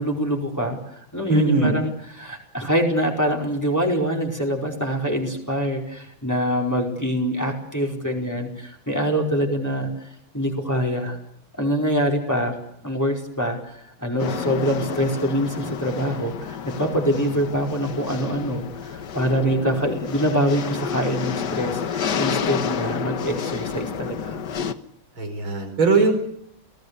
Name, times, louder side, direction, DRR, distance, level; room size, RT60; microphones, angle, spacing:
voice 1, 0.0-10.1 10.3-11.2 11.6-12.5 12.8-24.4, equal, 10° left, 1 dB, 4.7 m, -25 dB
voice 2, 1.3-1.7 25.2-26.1, right 3 dB, 75° right, 5 dB, 5.7 m, -19 dB
sound 1, 14.2-24.7, left 7 dB, 60° left, 1.7 m, -30 dB
30.0 x 18.5 x 8.4 m, 0.70 s
omnidirectional pair, 2.2 m